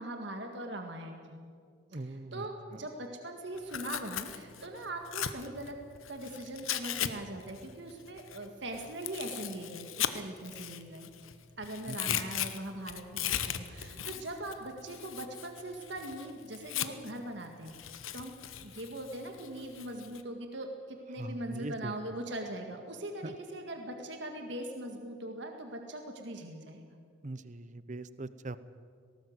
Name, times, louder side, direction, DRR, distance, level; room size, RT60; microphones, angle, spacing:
voice 1, 0.0-1.4 1.9-5.8 6.1-11.1 11.6-18.4 18.6-26.8, right 1 dB, 60° right, 4 dB, 1.8 m, -41 dB
voice 2, 1.9-2.5 2.7-2.8 11.9-12.3 21.2-21.9 23.2-23.3 27.2-28.6, right 2 dB, 40° right, 15 dB, 0.7 m, -41 dB
Tearing, 3.6-7.1 7.4-11.3 11.6-17.2 17.7-20.2, left 10 dB, 90° left, 1.1 m, -38 dB
19.0 x 18.5 x 8.0 m, 2.1 s
head